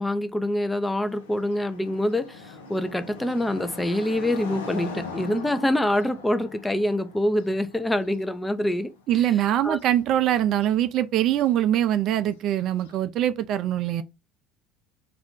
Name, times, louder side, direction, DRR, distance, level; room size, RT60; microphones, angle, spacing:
voice 1, 0.0-9.3 9.6-9.8, left 1 dB, 10° left, 0.5 m, -25 dB
sound 1, 1.1-9.3 9.6-10.1 10.6-10.7 11.4-11.5 12.8-13.0, left 3 dB, 85° left, 0.5 m, -41 dB
voice 2, 9.1-14.0, right 12 dB, 55° right, 0.3 m, -23 dB
2.5 x 2.2 x 3.5 m
hypercardioid pair, 80°, 0 cm